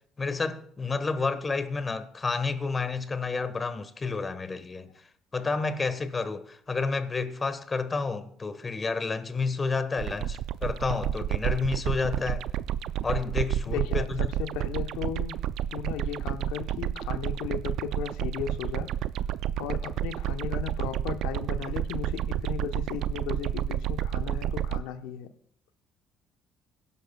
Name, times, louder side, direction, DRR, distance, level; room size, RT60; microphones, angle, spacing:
voice 1, 0.2-4.9 5.3-12.5 13.0-14.3, left 4 dB, 30° left, 1.2 m, -30 dB
sound 1, 10.0-24.8, right 11 dB, 65° right, 0.4 m, -30 dB
voice 2, 13.7-15.4 15.7-18.9 19.6-25.3, left 9 dB, 80° left, 0.9 m, -36 dB
21.5 x 11.0 x 2.3 m
hypercardioid pair, 60°, 0 cm